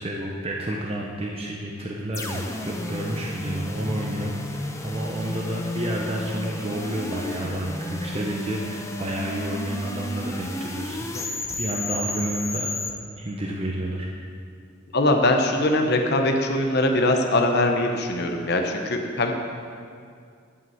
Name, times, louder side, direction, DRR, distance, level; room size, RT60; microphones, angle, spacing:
voice 1, 0.0-12.7 13.2-14.1, right 1 dB, 30° right, -2 dB, 0.8 m, -30 dB
sound 1, 2.1-12.9, left 1 dB, 15° left, 0.7 m, -32 dB
voice 2, 14.9-19.3, left 1 dB, 55° left, 3 dB, 0.9 m, -22 dB
11.0 x 5.5 x 7.3 m, 2.3 s
head